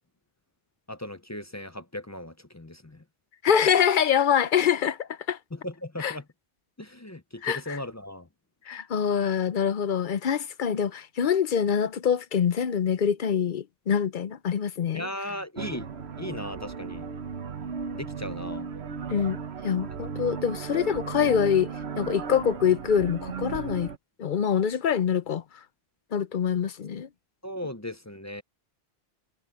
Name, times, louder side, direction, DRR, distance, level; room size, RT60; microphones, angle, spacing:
voice 1, 0.9-3.0 5.5-6.2 6.8-8.3 14.9-15.9 16.2-17.1 17.9-18.7 27.4-28.4, left 1 dB, 20° left, 0.6 m, -37 dB
voice 2, 3.4-5.4 6.0-6.2 7.4-7.8 8.7-15.1 19.1-21.7 22.0-23.9 24.2-25.4 26.1-27.1, left 8 dB, 55° left, 0.8 m, -25 dB
sound 1, 15.6-24.0, right 6 dB, 80° right, 1.2 m, -35 dB
omnidirectional pair, 1.1 m